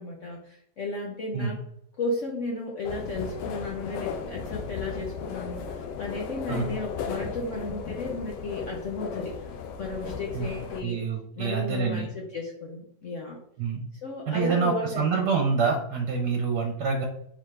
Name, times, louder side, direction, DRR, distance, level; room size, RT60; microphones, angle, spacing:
voice 1, 0.0-1.6 2.0-9.5 9.8-11.0 11.4-13.4 14.0-15.3, left 2 dB, 60° left, -1 dB, 0.8 m, -34 dB
sound 1, 2.8-10.8, left 6 dB, 75° left, 1.2 m, -36 dB
voice 2, 10.8-12.1 13.6-13.8 14.3-17.1, right 5 dB, 70° right, 1 dB, 1.3 m, -26 dB
4.0 x 3.5 x 3.2 m, 0.70 s
omnidirectional pair, 1.9 m